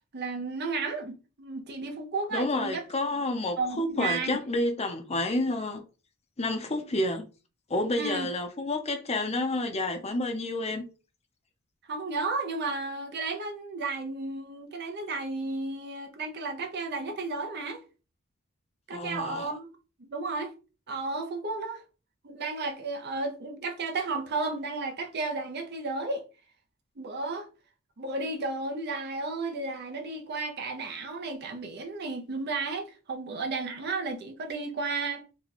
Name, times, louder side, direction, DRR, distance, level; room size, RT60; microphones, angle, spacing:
voice 1, 0.1-2.8 3.6-4.4 8.0-8.3 11.9-17.8 18.9-19.7 20.0-20.5 20.9-21.8 22.2-26.2 27.0-27.5 28.0-35.3, right 3 dB, 50° right, 0.7 m, -33 dB
voice 2, 2.3-5.8 6.4-7.2 7.7-10.8 18.9-19.5, left 2 dB, 30° left, 0.6 m, -29 dB
3.0 x 2.3 x 3.9 m
head